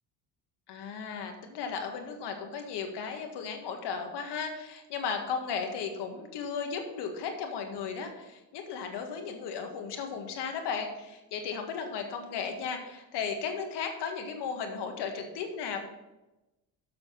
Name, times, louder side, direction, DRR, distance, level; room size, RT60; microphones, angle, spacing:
voice 1, 0.7-15.8, left 6 dB, 65° left, 4 dB, 1.7 m, -35 dB
7.5 x 6.3 x 5.8 m, 1.0 s
supercardioid pair, 75°, 44 cm